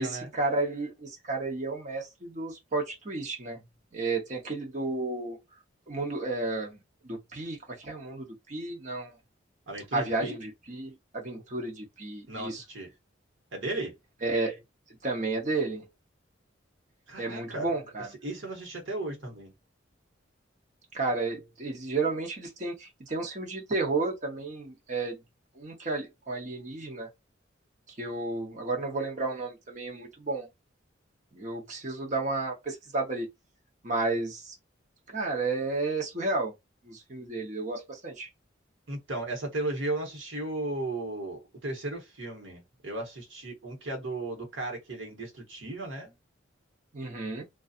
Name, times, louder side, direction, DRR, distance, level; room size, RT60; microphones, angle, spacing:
voice 1, 0.0-3.6 3.9-5.4 5.9-9.2 9.9-12.6 14.2-14.6 15.0-15.9 17.2-18.1 20.9-25.2 25.6-27.1 28.0-30.5 31.3-33.3 33.8-34.5 35.1-36.5 36.8-38.3 46.9-47.4, right 3 dB, 40° right, 0.8 m, -32 dB
voice 2, 9.7-10.4 12.3-12.9 13.5-14.0 17.1-17.7 18.2-19.5 38.9-46.1, right 2 dB, 75° right, 1.1 m, -35 dB
2.6 x 2.3 x 2.4 m
head